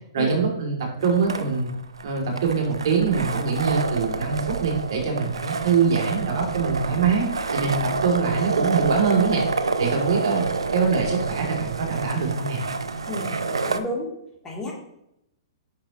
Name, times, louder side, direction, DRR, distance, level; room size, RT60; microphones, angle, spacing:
voice 1, 0.1-1.7 2.0-7.3 7.5-9.4 9.8-10.4 10.7-12.6, right 5 dB, 60° right, 0 dB, 2.4 m, -23 dB
voice 2, 1.0-1.5 13.1-14.1 14.4-14.7, left 1 dB, 15° left, -4 dB, 2.7 m, -33 dB
sound 1, 1.0-13.8, right 4 dB, 85° right, 0.6 m, -28 dB
8.6 x 6.2 x 2.9 m, 0.79 s
hypercardioid pair, 125°, 3 cm